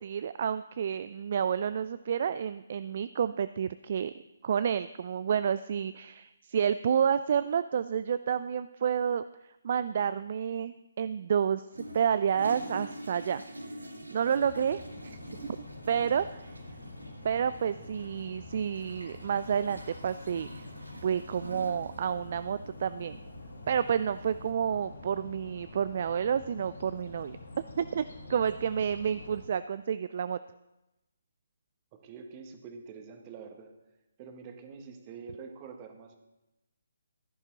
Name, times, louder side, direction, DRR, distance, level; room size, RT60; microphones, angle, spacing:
voice 1, 0.0-4.1 4.4-9.2 9.6-11.6 11.9-13.4 14.1-16.6 17.2-20.7 21.0-23.2 23.7-27.4 27.8-30.4, right 8 dB, 45° right, 14 dB, 0.3 m, -30 dB
Toilet flush, 11.7-24.5, right 1 dB, 85° right, 2.0 m, -46 dB
sound 1, 14.3-29.4, left 2 dB, 70° left, 3.5 m, -46 dB
voice 2, 31.9-33.7 34.2-36.2, right 5 dB, 25° right, 5 dB, 1.4 m, -46 dB
15.0 x 10.5 x 3.9 m, 0.97 s
figure-of-eight pair, 140°, 0 cm